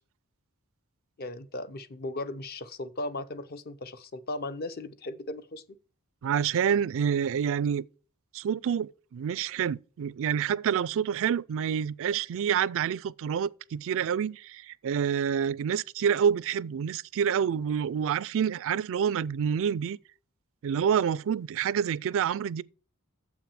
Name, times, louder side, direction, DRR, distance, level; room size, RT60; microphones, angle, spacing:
voice 1, 1.2-5.6, left 2 dB, 45° left, 0.7 m, -37 dB
voice 2, 6.2-7.8 8.3-20.0 20.6-22.6, right 8 dB, 60° right, 0.3 m, -28 dB
7.4 x 5.9 x 7.0 m
head